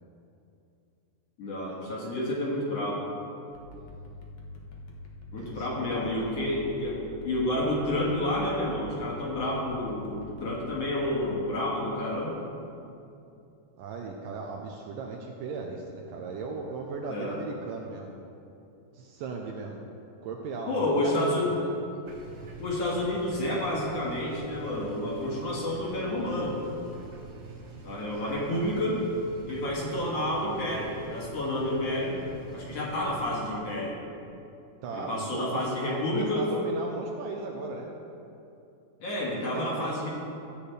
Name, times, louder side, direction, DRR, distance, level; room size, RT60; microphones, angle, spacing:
voice 1, 1.4-3.0 5.3-12.4 17.1-17.4 20.7-21.5 21.9-22.0 22.6-26.6 27.8-29.0 29.5-33.9 34.9-36.5 39.0-40.1, left 1 dB, 50° left, -4 dB, 2.4 m, -30 dB
sound 1, 3.5-11.3, left 1 dB, 85° left, 1.1 m, -45 dB
voice 2, 5.3-6.4 13.8-18.1 18.9-19.8 20.2-21.7 34.8-37.9 39.3-40.0, right 4 dB, 80° right, 1 dB, 2.2 m, -37 dB
sound 2, 22.1-33.5, right 3 dB, 55° right, 1.6 m, -45 dB
15.5 x 8.4 x 3.3 m, 2.7 s
omnidirectional pair, 4.1 m